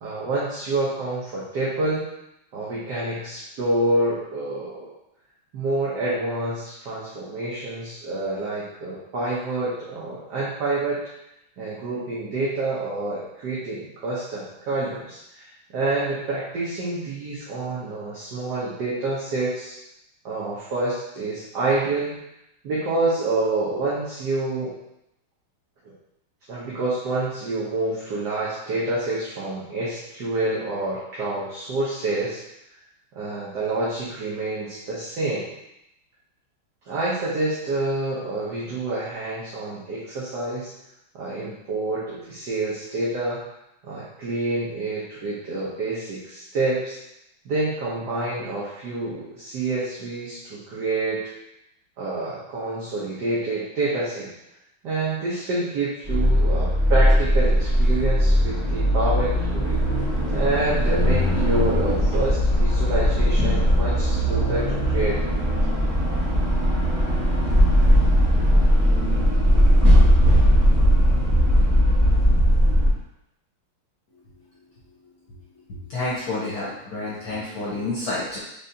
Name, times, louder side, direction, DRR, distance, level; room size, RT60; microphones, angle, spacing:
voice 1, 0.0-2.1 2.5-4.9 5.5-11.0 11.6-19.8 20.2-22.2 22.6-24.8 26.5-32.4 33.1-35.5 36.9-40.7 41.1-43.4 43.8-47.0 47.4-51.2 52.0-54.3 54.8-59.8 60.3-65.2, right 2 dB, 60° right, -7 dB, 1.4 m, -27 dB
sound 1, 56.0-72.9, equal, 10° right, 1.2 m, -19 dB
voice 2, 75.9-78.4, left 2 dB, 60° left, -8 dB, 1.1 m, -29 dB
5.2 x 3.3 x 2.7 m, 0.83 s
omnidirectional pair, 2.4 m